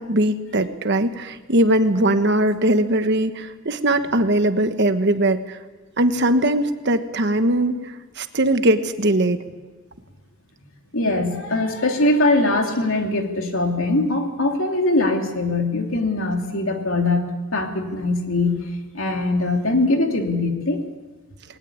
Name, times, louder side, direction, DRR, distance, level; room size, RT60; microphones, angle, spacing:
voice 1, 0.0-5.6 6.0-9.4, right 1 dB, 55° right, 9 dB, 1.3 m, -20 dB
voice 2, 10.9-17.2 17.5-18.6 18.9-20.8, left 2 dB, 70° left, 3 dB, 3.0 m, -21 dB
20.5 x 19.0 x 8.7 m, 1.2 s
head